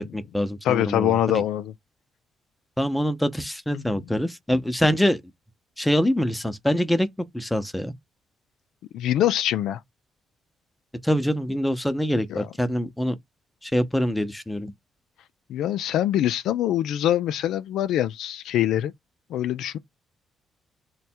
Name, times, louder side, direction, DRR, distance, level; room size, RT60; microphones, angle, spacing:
voice 1, 0.0-1.4 2.8-5.2 5.8-7.1 7.3-7.9 11.0-13.1 13.6-14.7, equal, 5° left, 0.6 m, -24 dB
voice 2, 0.6-1.7 3.7-4.0 8.9-9.8 12.3-12.5 15.5-18.9 19.3-19.8, left 12 dB, 85° left, 0.3 m, -24 dB
3.2 x 2.2 x 4.3 m
cardioid pair, 90°, 0 cm